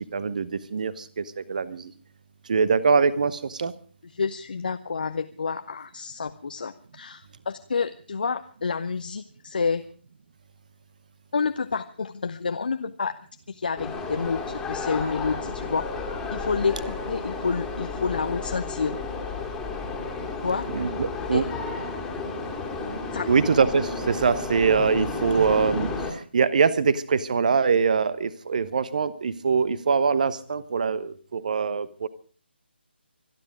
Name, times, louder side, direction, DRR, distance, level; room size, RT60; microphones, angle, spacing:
voice 1, 0.1-1.9 2.5-3.7 20.7-21.5 23.3-32.1, right 5 dB, 45° right, 17 dB, 1.1 m, -23 dB
voice 2, 4.1-9.8 11.3-13.1 13.5-15.9 16.3-19.0 20.4-20.9 21.3-21.4 23.1-23.3, left 5 dB, 50° left, 8 dB, 0.8 m, -29 dB
sound 1, 13.8-26.1, left 3 dB, 5° left, 2.3 m, -32 dB
25.5 x 10.5 x 5.0 m, 0.42 s
figure-of-eight pair, 150°, 6 cm